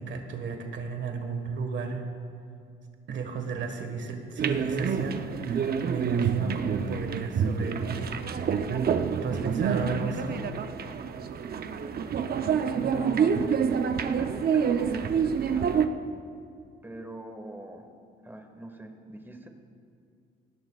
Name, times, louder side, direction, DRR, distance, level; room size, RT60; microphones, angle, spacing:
voice 1, 0.0-2.0 3.1-8.2 9.2-10.4 14.9-15.2, right 5 dB, 65° right, 5 dB, 1.5 m, -34 dB
sound 1, 4.4-15.9, right 7 dB, 50° right, 0.7 m, -27 dB
voice 2, 12.7-13.5 14.0-16.0 16.8-17.9 18.2-19.5, right 1 dB, 10° right, 4 dB, 1.8 m, -42 dB
19.5 x 18.0 x 2.4 m, 2.4 s
cardioid pair, 90°, 20 cm